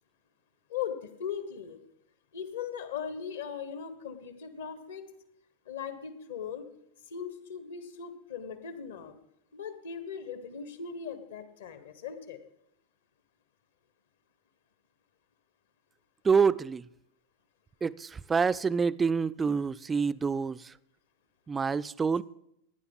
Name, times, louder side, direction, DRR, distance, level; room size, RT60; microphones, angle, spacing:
voice 1, 0.7-1.8 2.3-5.0 5.7-6.7 7.1-9.2 9.5-12.4, left 7 dB, 60° left, 1.3 m, -39 dB
voice 2, 16.2-16.8 17.8-20.6 21.5-22.2, right 5 dB, 15° right, 0.3 m, -27 dB
17.0 x 10.0 x 3.9 m
figure-of-eight pair, 90°, 0 cm